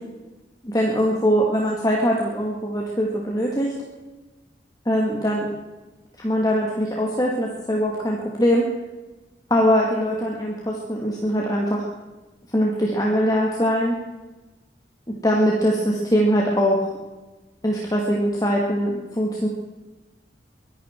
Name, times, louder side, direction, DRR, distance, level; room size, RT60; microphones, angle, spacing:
voice 1, 0.6-3.7 4.9-5.5 6.2-8.7 9.5-11.9 12.5-14.0 15.2-16.9 17.6-19.5, equal, 20° left, -1 dB, 2.1 m, -22 dB
22.5 x 12.0 x 4.6 m, 1.2 s
head